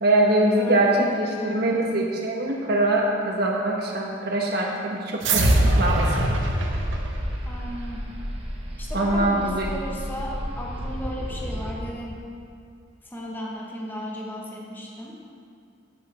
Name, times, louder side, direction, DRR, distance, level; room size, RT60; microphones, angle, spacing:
voice 1, 0.0-6.1 8.9-9.7, right 1 dB, 55° right, -1 dB, 1.4 m, -23 dB
voice 2, 0.6-1.8 7.5-8.1 8.8-12.2 13.0-15.2, equal, 10° left, -2 dB, 1.1 m, -35 dB
sound 1, 5.2-7.9, right 1 dB, 80° right, 1.0 m, -22 dB
sound 2, 6.6-11.7, equal, 30° right, 1.1 m, -33 dB
9.2 x 5.6 x 6.6 m, 2.3 s
head